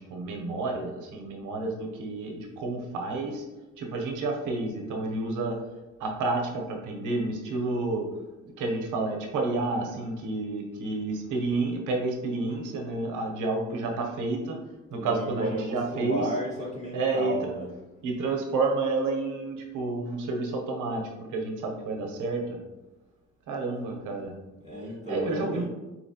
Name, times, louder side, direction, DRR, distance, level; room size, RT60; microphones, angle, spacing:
voice 1, 0.0-3.4 3.8-5.6 6.0-8.1 8.6-14.6 14.9-16.3 16.9-17.4 18.0-22.6 23.5-24.3 25.1-25.6, right 3 dB, 85° right, 1 dB, 0.8 m, -30 dB
voice 2, 14.9-17.7 24.6-25.6, right 1 dB, 25° left, -7 dB, 1.3 m, -34 dB
4.4 x 2.9 x 2.8 m, 1.0 s
cardioid pair, 90°, 30 cm